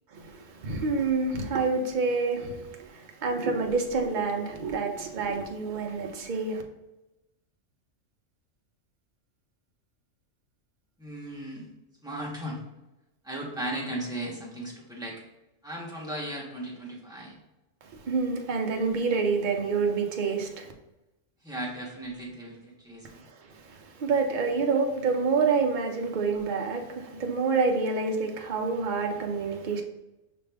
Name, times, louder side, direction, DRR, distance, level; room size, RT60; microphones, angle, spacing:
voice 1, 0.1-6.6 17.9-20.7 23.5-23.6 24.0-29.8, right 4 dB, 50° right, 0.6 m, -27 dB
voice 2, 11.0-11.7 12.0-12.6 13.2-15.2 15.6-17.4 21.4-23.1 26.3-26.4, right 1 dB, 5° right, 0.8 m, -36 dB
5.7 x 2.6 x 3.4 m
omnidirectional pair, 1.3 m